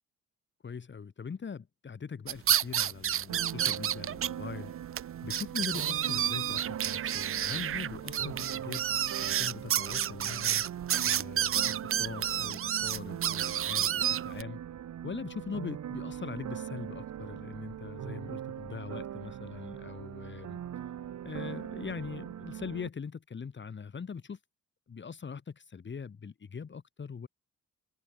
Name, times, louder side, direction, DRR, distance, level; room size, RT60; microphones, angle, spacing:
voice 1, 0.6-8.9 9.2-10.6 11.0-14.6 15.0-20.6 21.2-24.4 24.9-27.3, left 6 dB, 40° left, 3.5 m, -42 dB
sound 1, 2.3-4.3 4.6-4.7 5.0-5.1 5.3-14.4, right 10 dB, 45° right, 0.7 m, -30 dB
sound 2, 3.3-22.9, right 10 dB, 65° right, 7.8 m, -41 dB
cardioid pair, 90°, 30 cm